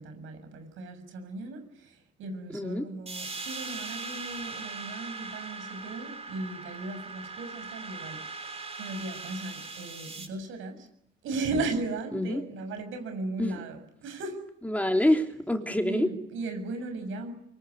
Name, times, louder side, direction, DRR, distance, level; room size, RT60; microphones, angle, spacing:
voice 1, 0.0-10.9 11.2-14.4 15.8-17.3, right 3 dB, 85° right, 7 dB, 6.9 m, -36 dB
voice 2, 2.5-2.9 12.1-12.4 13.4-13.6 14.6-16.1, left 1 dB, 5° left, 4 dB, 3.3 m, -26 dB
sound 1, 3.1-10.3, right 3 dB, 30° right, 6.2 m, -40 dB
24.5 x 24.0 x 9.6 m, 0.73 s
cardioid pair, 90°, 20 cm